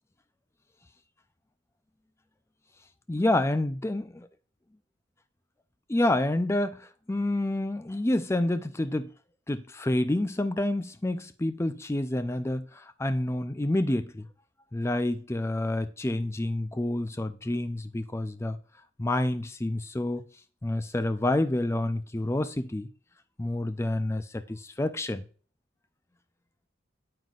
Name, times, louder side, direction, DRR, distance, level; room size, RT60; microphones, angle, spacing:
voice 1, 3.1-4.3 5.9-9.1 9.5-14.3 14.7-18.6 19.0-20.2 20.6-22.9 23.4-25.2, left 1 dB, 15° left, 0.4 m, -28 dB
9.1 x 7.8 x 2.5 m
head